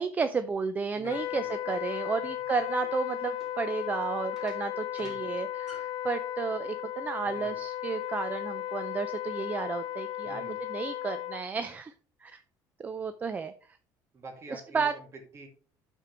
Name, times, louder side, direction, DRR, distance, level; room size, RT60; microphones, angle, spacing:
voice 1, 0.0-11.9 12.2-12.4 12.8-13.8 14.7-14.9, right 5 dB, 20° right, 10 dB, 0.4 m, -32 dB
voice 2, 0.9-1.7 5.0-5.3 7.2-7.6 10.2-10.6 14.1-15.5, right 2 dB, 35° right, 2 dB, 2.4 m, -48 dB
Wind instrument woodwind instrument, 1.0-11.5, left 13 dB, 75° left, 0.5 m, -35 dB
sound 1, 1.9-6.1, left 1 dB, 5° right, 4.0 m, -55 dB
12.0 x 4.5 x 3.3 m, 0.42 s
cardioid pair, 145°, 8 cm